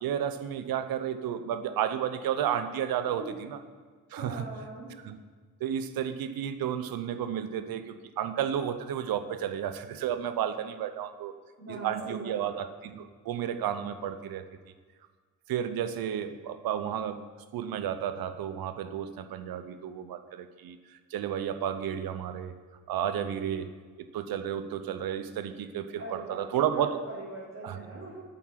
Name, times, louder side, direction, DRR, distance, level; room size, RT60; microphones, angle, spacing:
voice 1, 0.0-3.6 4.1-4.5 5.0-5.2 5.6-11.3 11.7-14.4 15.5-17.2 17.5-22.5 22.9-23.7 24.1-27.0 27.6-27.8, right 9 dB, 70° right, 10 dB, 0.8 m, -32 dB
voice 2, 4.2-4.9 11.6-12.5 26.0-28.2, right 2 dB, 45° right, -10 dB, 3.5 m, -41 dB
8.4 x 7.8 x 5.8 m, 1.5 s
supercardioid pair, 50°, 36 cm